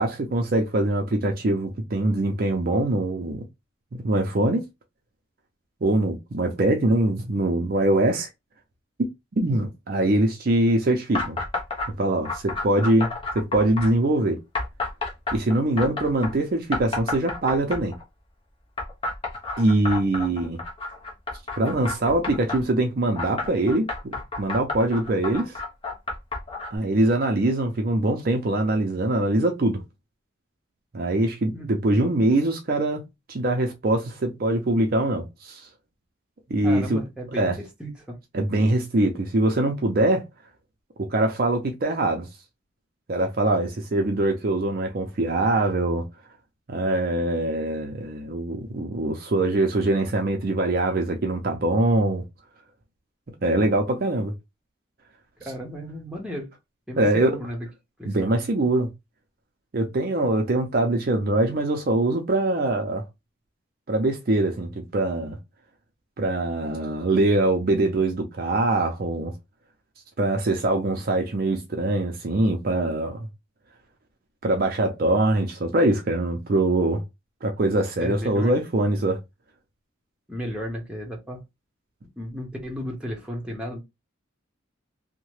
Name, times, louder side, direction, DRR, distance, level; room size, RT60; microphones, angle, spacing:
voice 1, 0.0-3.4 4.0-4.6 5.8-8.3 9.4-11.4 12.0-13.1 13.3-14.4 15.3-17.9 19.6-20.6 21.6-25.6 26.7-29.8 30.9-33.0 33.3-35.6 36.5-37.0 37.4-37.5 38.3-40.2 41.1-42.3 43.1-46.0 46.7-52.2 53.4-54.3 57.0-57.3 58.1-58.9 59.7-63.0 63.9-65.4 66.2-69.3 70.2-73.2 74.4-77.0 77.4-79.2, right 2 dB, 45° right, 0.5 m, -23 dB
sound 1, 11.1-11.9 12.3-13.9 14.5-16.3 16.7-18.0 18.8-22.6 23.2-26.8, left 3 dB, 25° left, 0.8 m, -30 dB
voice 2, 36.6-38.2 55.4-56.5 56.9-57.7 58.0-58.3 78.0-78.6 80.3-81.4 82.2-83.8, equal, 5° right, 0.8 m, -34 dB
2.8 x 2.1 x 3.0 m
head